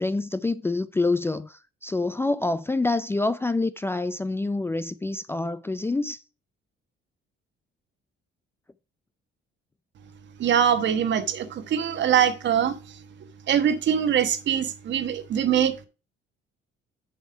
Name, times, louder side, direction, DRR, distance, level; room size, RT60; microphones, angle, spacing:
voice 1, 0.0-6.2, left 2 dB, 10° left, 0.4 m, -27 dB
voice 2, 10.4-12.7 13.5-15.9, right 9 dB, 60° right, 1.2 m, -23 dB
7.4 x 5.4 x 4.5 m
cardioid pair, 120°, 21 cm